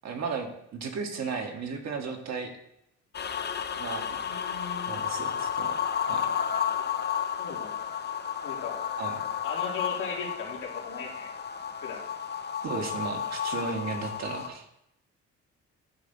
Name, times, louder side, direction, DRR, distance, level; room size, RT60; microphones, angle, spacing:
voice 1, 0.0-2.5 3.8-4.2 4.9-5.8 6.1-6.3 9.0-9.1 12.6-14.6, right 5 dB, 60° right, 3 dB, 1.5 m, -35 dB
sound 1, 3.1-14.5, left 8 dB, 35° left, 0.6 m, -32 dB
voice 2, 4.2-5.0 6.8-6.9 7.4-7.9 8.4-8.8 9.4-11.3 11.8-12.0, left 5 dB, 80° left, -2 dB, 2.4 m, -38 dB
9.3 x 3.4 x 6.8 m, 0.80 s
cardioid pair, 90°, 30 cm